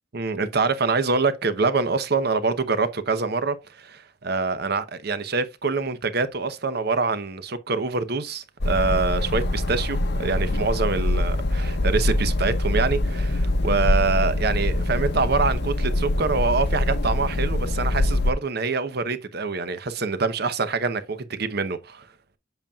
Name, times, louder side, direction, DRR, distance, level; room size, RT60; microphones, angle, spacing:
voice 1, 0.1-22.0, right 4 dB, 55° right, 0.8 m, -25 dB
sound 1, 8.6-18.3, left 1 dB, 60° left, 0.8 m, -24 dB
8.1 x 7.0 x 2.4 m
head